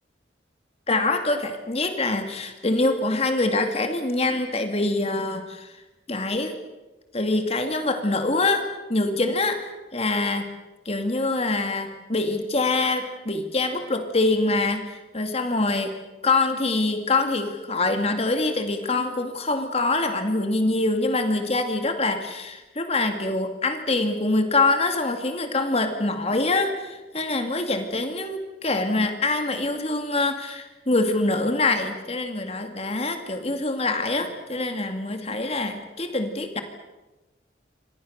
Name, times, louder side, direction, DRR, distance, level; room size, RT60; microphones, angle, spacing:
voice 1, 0.9-5.7 6.1-6.6 7.1-9.6 9.9-10.5 10.9-16.0 16.2-36.6, left 2 dB, 35° left, 6 dB, 2.4 m, -24 dB
29.0 x 26.5 x 6.6 m, 1.1 s
head